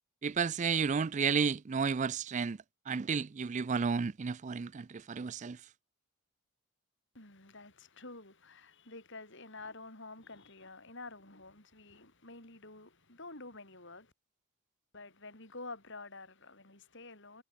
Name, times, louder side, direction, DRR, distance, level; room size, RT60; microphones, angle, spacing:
voice 1, 0.2-2.6 2.9-5.6, right 5 dB, 30° right, 0.4 m, -32 dB
voice 2, 7.1-14.1 14.9-17.4, left 3 dB, 55° left, 7.9 m, -49 dB
head